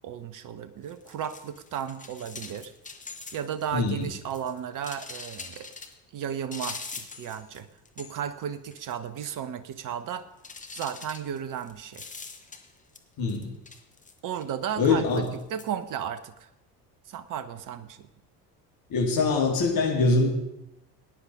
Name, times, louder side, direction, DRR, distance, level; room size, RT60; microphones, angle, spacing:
voice 1, 0.0-2.7 3.3-5.7 6.1-7.7 8.0-10.3 10.7-12.1 14.2-15.2 15.5-16.5 17.1-18.1, right 8 dB, 40° right, 13 dB, 1.2 m, -34 dB
sound 1, 0.8-3.7 4.0-5.9 6.5-7.6 7.9-8.4 8.7-8.9 9.2-9.3 10.4-13.0 13.3-14.5 15.1-15.6, left 4 dB, 15° left, 1.6 m, -43 dB
voice 2, 3.7-4.1 13.2-13.5 14.8-15.2 18.9-20.3, left 3 dB, 45° left, -1 dB, 3.9 m, -23 dB
18.0 x 10.0 x 5.0 m, 0.88 s
figure-of-eight pair, 60°, 49 cm